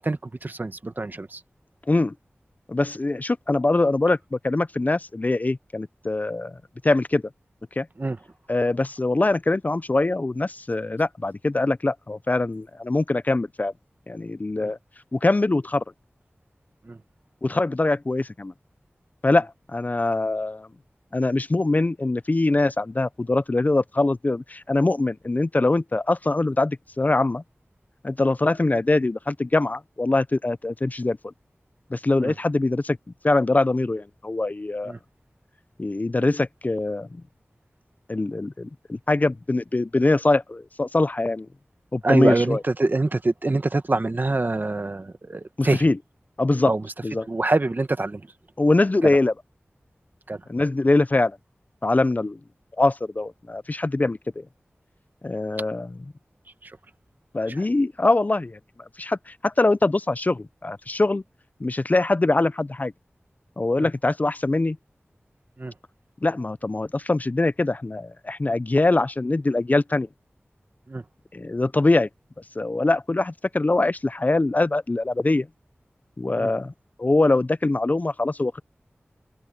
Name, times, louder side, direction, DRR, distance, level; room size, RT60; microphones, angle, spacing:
voice 1, 0.0-1.4 8.0-8.2 14.6-14.7 16.8-17.0 32.2-32.3 34.8-35.0 42.0-45.9 46.6-46.9 47.3-48.3 49.0-49.2 50.3-50.4 56.6-56.8 57.5-57.7 63.8-63.9 65.6-65.7 70.9-71.0 76.4-76.5, right 2 dB, 50° right, 1.3 m, -25 dB
voice 2, 2.7-6.6 6.8-7.2 7.8-7.9 8.5-13.7 14.1-14.8 15.1-15.8 17.4-18.5 19.2-20.7 21.1-27.4 28.0-31.2 31.9-33.0 33.2-34.9 35.8-37.2 38.1-41.5 41.9-42.6 45.6-46.0 46.4-46.7 47.0-47.2 48.6-49.3 50.5-51.4 51.8-52.4 52.8-54.2 55.2-55.9 57.3-58.6 59.0-61.2 61.6-62.9 63.6-64.8 66.2-70.1 71.3-72.1 72.6-75.5 76.2-76.7 77.0-78.6, left 2 dB, 40° left, 0.5 m, -23 dB
wide cardioid pair, 60°, 4 cm